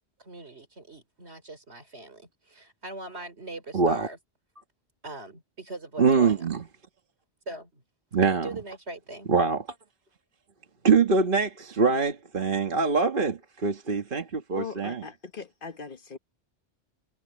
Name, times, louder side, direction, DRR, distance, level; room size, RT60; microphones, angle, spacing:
voice 1, 0.2-4.2 5.0-6.6 7.5-7.8 8.4-9.3, right 2 dB, 75° right, 4.2 m, -41 dB
voice 2, 3.7-4.1 6.0-6.6 8.1-8.5 9.3-9.6 10.8-15.1, right 4 dB, 50° right, 1.5 m, -23 dB
voice 3, 14.6-16.2, left 6 dB, 50° left, 1.4 m, -39 dB
omnidirectional pair, 1.1 m